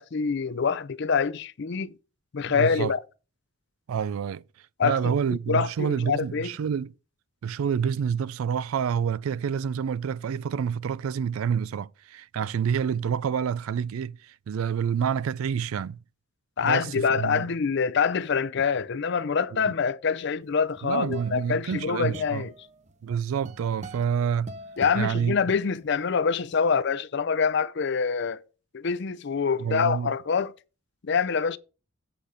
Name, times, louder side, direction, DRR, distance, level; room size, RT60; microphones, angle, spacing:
voice 1, 0.0-1.9 2.3-3.0 4.8-5.1 5.5-6.5 16.6-22.5 24.8-28.4 28.7-30.5 31.0-31.6, left 5 dB, 55° left, 0.5 m, -25 dB
voice 2, 2.5-2.9 3.9-4.4 4.8-6.9 7.4-16.0 16.6-17.5 20.8-22.5 23.0-24.5 25.0-25.4 29.6-30.1, right 7 dB, 85° right, 0.3 m, -28 dB
sound 1, 20.5-26.0, right 1 dB, 35° right, 0.7 m, -44 dB
8.5 x 5.1 x 5.6 m
head